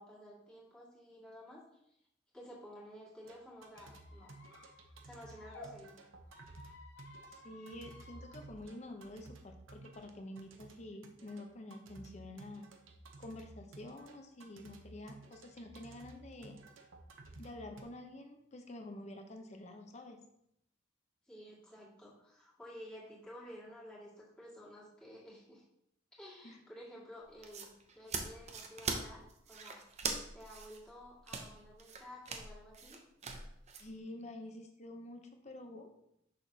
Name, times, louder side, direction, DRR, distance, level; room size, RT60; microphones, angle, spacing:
voice 1, 0.0-1.8 2.3-4.4 5.0-6.0 21.3-25.6 26.1-29.8 30.3-33.0, equal, 5° left, -8 dB, 2.0 m, -53 dB
sound 1, 3.2-17.8, right 2 dB, 85° right, 0.8 m, -55 dB
Squeak, 3.7-5.7 6.2-8.4, left 2 dB, 60° left, 1.0 m, -56 dB
voice 2, 7.3-12.7 13.2-16.6 17.4-20.2 26.4-26.6 33.8-35.9, left 1 dB, 35° left, 5 dB, 0.7 m, -48 dB
sound 2, 27.2-33.9, right 4 dB, 35° right, 0.7 m, -42 dB
6.5 x 6.1 x 2.8 m, 0.76 s
head